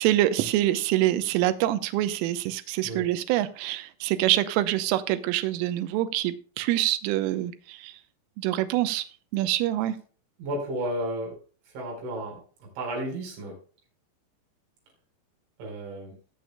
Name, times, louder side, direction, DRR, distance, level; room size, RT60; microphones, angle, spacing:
voice 1, 0.0-7.9 8.4-9.0 9.3-10.0, right 14 dB, 80° right, 10 dB, 3.3 m, -25 dB
voice 2, 10.4-11.4 11.7-13.6 15.6-16.2, right 1 dB, 65° right, 0 dB, 6.8 m, -33 dB
20.0 x 7.0 x 2.2 m, 0.39 s
omnidirectional pair, 5.9 m